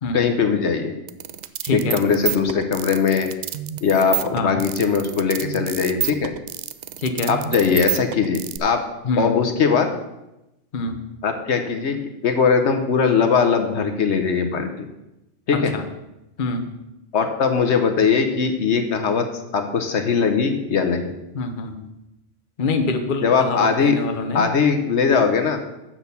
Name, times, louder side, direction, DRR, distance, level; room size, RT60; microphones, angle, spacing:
voice 1, 0.1-0.9 1.7-3.3 3.8-6.3 7.3-8.8 9.2-9.9 11.2-12.0 12.2-14.9 15.5-15.7 17.1-19.3 19.5-21.1 23.2-23.9 24.3-25.6, left 5 dB, 65° left, 6 dB, 1.1 m, -20 dB
sound 1, 1.1-8.6, right 11 dB, 70° right, 0.4 m, -28 dB
voice 2, 1.6-2.0 4.3-4.6 7.0-7.3 9.0-9.4 10.7-11.0 15.5-15.8 16.4-16.6 21.3-21.8 22.6-24.4, left 3 dB, 45° left, 6 dB, 1.0 m, -25 dB
7.4 x 6.2 x 6.9 m, 0.93 s
omnidirectional pair, 1.3 m